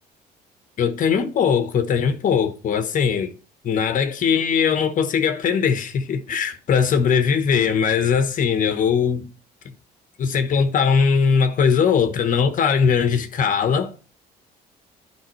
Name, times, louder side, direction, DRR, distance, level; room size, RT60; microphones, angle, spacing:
voice 1, 0.8-3.3 3.6-9.3 10.2-13.9, left 6 dB, 50° left, 1.1 m, -20 dB
10.5 x 5.3 x 3.1 m
cardioid pair, 110°, 17 cm